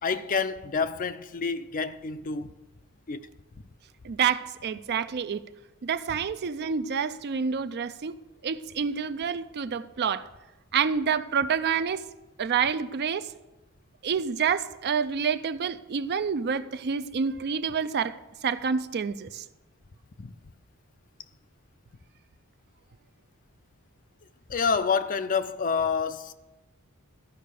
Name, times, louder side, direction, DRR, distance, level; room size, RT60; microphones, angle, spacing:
voice 1, 0.0-2.5 3.1-3.3 20.2-20.3 24.5-26.3, left 5 dB, 40° left, 0.5 m, -28 dB
voice 2, 4.0-5.4 5.8-8.1 8.4-10.3 10.7-12.0 12.4-13.3 14.0-18.2 18.4-19.4, right 6 dB, 50° right, 0.4 m, -28 dB
13.5 x 5.5 x 6.8 m
head